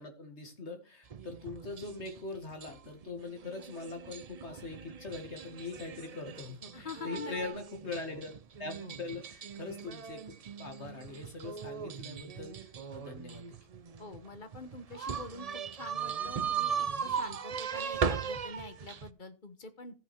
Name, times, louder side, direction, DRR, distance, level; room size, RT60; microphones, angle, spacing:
voice 1, 0.0-8.3 8.6-10.3 10.6-13.5, left 3 dB, 60° left, 5 dB, 2.3 m, -42 dB
sound 1, 1.1-19.1, right 7 dB, 45° right, 0.5 m, -38 dB
voice 2, 6.7-7.3 8.8-9.0 14.0-19.9, left 4 dB, 40° left, 9 dB, 1.2 m, -46 dB
14.5 x 6.1 x 4.4 m, 0.34 s
omnidirectional pair, 1.3 m